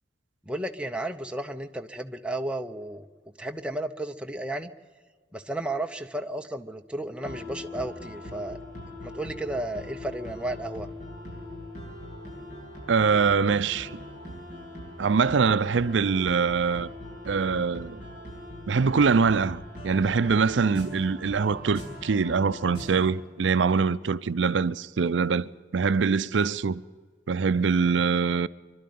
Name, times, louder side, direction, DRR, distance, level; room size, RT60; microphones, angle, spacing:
voice 1, 0.5-3.1 3.4-4.7 5.3-8.6 9.0-10.9, right 1 dB, 5° right, 0.7 m, -33 dB
sound 1, 7.2-23.1, left 1 dB, 45° left, 8.0 m, -41 dB
voice 2, 12.9-13.9 15.0-16.9 17.3-18.0 18.7-26.8 27.3-28.5, right 5 dB, 80° right, 0.5 m, -24 dB
25.0 x 12.0 x 9.3 m
head